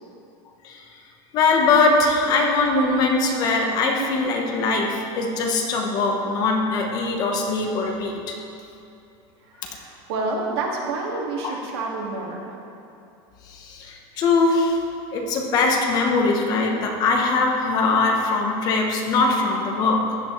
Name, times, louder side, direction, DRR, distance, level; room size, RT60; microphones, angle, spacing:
voice 1, 1.3-8.3 9.6-9.7 11.4-11.5 13.5-14.8 15.1-20.2, left 3 dB, 30° left, 2 dB, 1.1 m, -21 dB
voice 2, 9.5-12.6, right 3 dB, 85° right, -1 dB, 2.2 m, -29 dB
15.0 x 11.0 x 3.3 m, 2.7 s
supercardioid pair, 180°, 13 cm